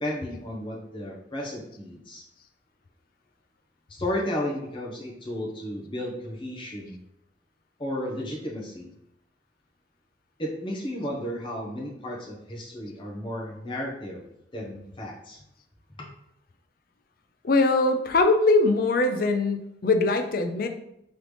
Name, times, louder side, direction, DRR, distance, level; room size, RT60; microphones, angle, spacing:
voice 1, 0.0-2.2 3.9-7.0 7.8-8.9 10.4-14.3 14.5-15.4 16.0-16.1, left 1 dB, 25° left, -3 dB, 0.9 m, -33 dB
voice 2, 17.4-20.7, left 3 dB, 50° left, 6 dB, 0.4 m, -22 dB
3.8 x 3.2 x 3.2 m, 0.78 s
head